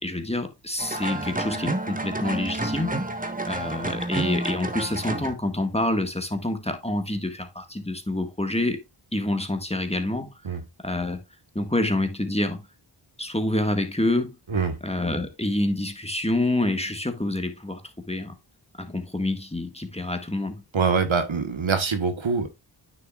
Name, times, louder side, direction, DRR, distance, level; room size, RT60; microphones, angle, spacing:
voice 1, 0.0-2.9 3.5-8.8 9.1-10.3 10.8-11.2 11.5-12.7 13.2-14.3 14.8-18.3 18.8-20.6, left 1 dB, 15° left, 1.7 m, -27 dB
sound 1, 0.8-5.3, right 2 dB, 20° right, 1.3 m, -29 dB
voice 2, 20.7-22.5, right 5 dB, 90° right, 1.5 m, -24 dB
9.3 x 6.7 x 2.4 m
wide cardioid pair, 45°, 46 cm